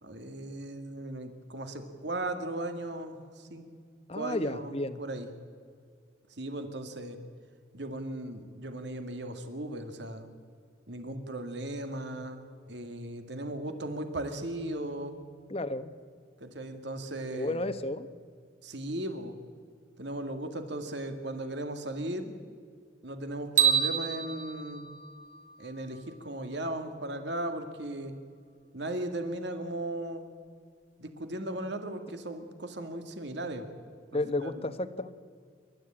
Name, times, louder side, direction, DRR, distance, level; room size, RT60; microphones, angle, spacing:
voice 1, 0.0-3.7 4.1-5.3 6.4-7.2 7.7-10.3 10.9-12.4 12.7-15.2 16.4-17.6 18.6-19.3 20.0-22.3 23.0-24.9 25.6-28.1 28.7-30.3 31.0-33.7 34.1-34.5, right 1 dB, 65° right, 7 dB, 2.1 m, -37 dB
voice 2, 4.1-5.0 15.5-15.9 17.3-18.1 34.1-35.2, left 2 dB, 30° left, 11 dB, 0.9 m, -32 dB
sound 1, 23.6-25.8, right 8 dB, 40° right, 1.9 m, -28 dB
28.0 x 12.5 x 8.8 m, 2.1 s
head